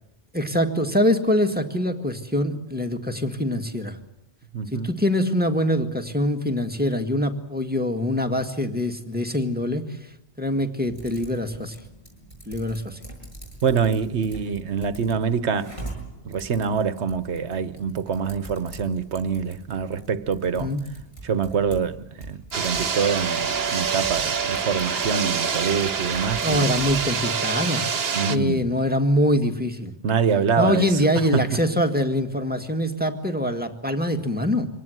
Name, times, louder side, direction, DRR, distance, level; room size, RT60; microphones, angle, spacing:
voice 1, 0.3-4.0 4.7-9.9 10.4-11.8 12.5-13.0 20.6-20.8 26.4-27.8 28.3-29.9 30.6-34.7, left 1 dB, 10° right, 1.7 m, -24 dB
voice 2, 4.5-4.9 13.6-15.8 16.2-20.7 21.2-26.8 28.1-28.8 30.0-31.0 31.3-31.6, right 6 dB, 80° right, 1.3 m, -25 dB
Typing, 10.9-27.1, right 2 dB, 30° left, 7.8 m, -43 dB
sound 1, 22.5-28.4, right 6 dB, 60° right, 1.3 m, -26 dB
25.0 x 18.5 x 7.9 m
omnidirectional pair, 1.1 m